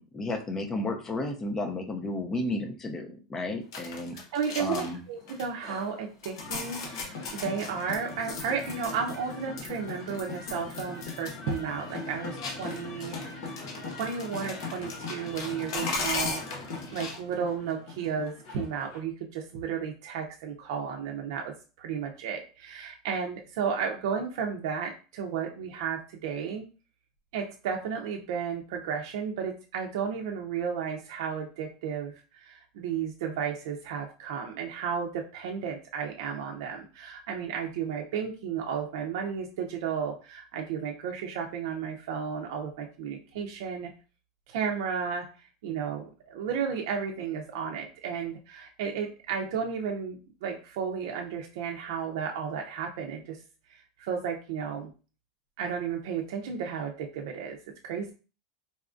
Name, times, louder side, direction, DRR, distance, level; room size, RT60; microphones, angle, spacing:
voice 1, 0.0-4.2 4.6-5.0, left 2 dB, 15° left, 5 dB, 0.5 m, -32 dB
sound 1, 3.7-5.0 5.3-5.9 6.2-9.3 9.6-11.3 11.6-11.7 12.4-17.2, left 3 dB, 80° left, 0.9 m, -37 dB
voice 2, 4.3-16.4 16.9-26.6 27.3-43.9 44.5-45.3 45.6-53.4 53.7-54.9 55.6-57.6 57.8-58.1, right 6 dB, 65° right, 1 dB, 0.5 m, -33 dB
sound 2, 6.4-19.0, left 3 dB, 65° left, 1.3 m, -40 dB
4.0 x 2.3 x 2.5 m, 0.34 s
supercardioid pair, 155°, 2 cm